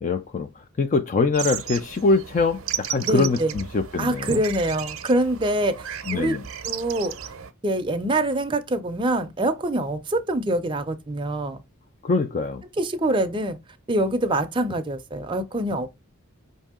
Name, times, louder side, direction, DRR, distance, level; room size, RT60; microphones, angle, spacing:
voice 1, 0.0-4.4 6.1-6.4 12.0-12.6, left 3 dB, 35° left, 0.3 m, -23 dB
sound 1, 1.3-7.5, right 10 dB, 80° right, 0.6 m, -34 dB
voice 2, 3.0-3.5 4.0-6.4 6.6-7.3 7.6-11.6 12.8-13.6 13.9-15.9, right 1 dB, 20° right, 0.5 m, -25 dB
5.4 x 2.7 x 3.5 m
head